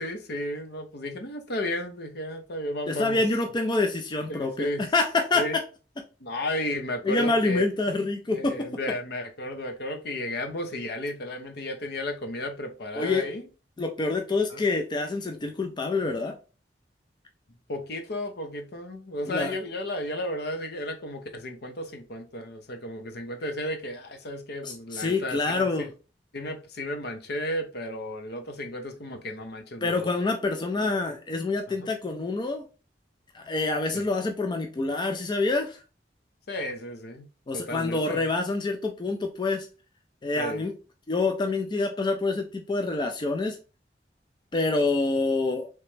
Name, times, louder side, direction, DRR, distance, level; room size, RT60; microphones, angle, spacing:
voice 1, 0.0-3.2 4.3-4.9 5.3-5.6 6.2-7.6 8.3-13.5 14.5-14.6 17.7-25.9 26.3-30.1 31.7-31.9 33.9-34.1 36.5-37.3 37.5-38.3 40.4-40.6, left 1 dB, 65° left, 0.7 m, -33 dB
voice 2, 2.9-5.4 7.0-8.7 13.0-13.3 13.8-16.4 19.3-19.5 24.6-25.9 29.8-32.6 33.3-35.8 37.5-39.7 40.2-40.7 41.1-43.6 44.5-45.7, left 3 dB, 25° left, 0.4 m, -27 dB
3.2 x 3.0 x 3.1 m
head